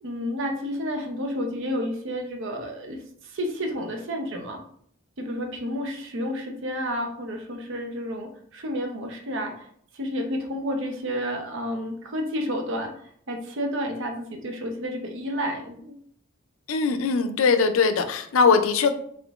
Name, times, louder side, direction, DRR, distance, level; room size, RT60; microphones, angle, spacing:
voice 1, 0.0-4.6 5.2-9.7 9.9-15.9, equal, 65° right, 3 dB, 0.7 m, -31 dB
voice 2, 16.7-18.9, left 5 dB, 75° left, 8 dB, 0.5 m, -21 dB
3.8 x 3.6 x 2.4 m, 0.64 s
head